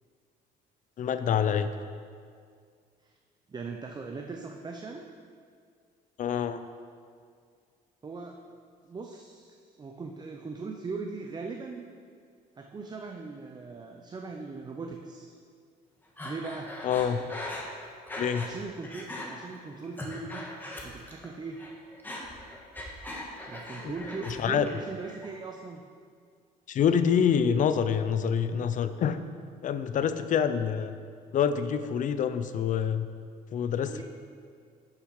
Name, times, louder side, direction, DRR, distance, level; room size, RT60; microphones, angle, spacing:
voice 1, 1.0-1.7 6.2-6.6 16.8-17.3 18.2-18.4 23.8-23.9 24.3-24.7 26.7-29.2 29.6-30.9 31.3-33.1 33.5-34.0, left 7 dB, 50° left, 11 dB, 0.6 m, -26 dB
voice 2, 3.5-5.1 8.0-8.4 8.9-11.8 12.6-15.3 16.2-16.7 18.4-20.4 20.8-21.6 23.5-25.9 33.8-34.0, right 4 dB, 25° right, 3 dB, 0.7 m, -39 dB
Breathing, 16.2-18.6 18.8-19.3 19.7-21.3 21.5-24.4 24.7-25.3, left 1 dB, 10° left, 1.7 m, -40 dB
11.5 x 7.0 x 4.8 m, 2.1 s
cardioid pair, 110°, 17 cm